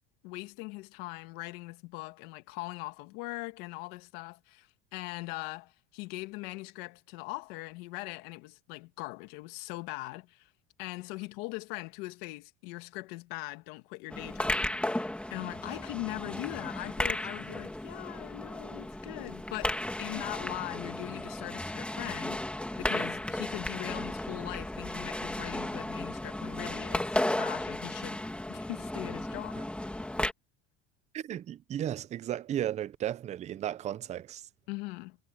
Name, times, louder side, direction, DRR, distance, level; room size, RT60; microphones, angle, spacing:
voice 1, 0.2-10.5 10.8-14.8 15.3-28.2 28.5-29.7 34.7-35.2, left 22 dB, 85° left, 1.8 m, -41 dB
sound 1, 14.1-30.3, left 1 dB, 5° left, 1.9 m, -34 dB
voice 2, 31.1-34.5, right 11 dB, 25° right, 0.4 m, -35 dB
cardioid pair, 160°, 30 cm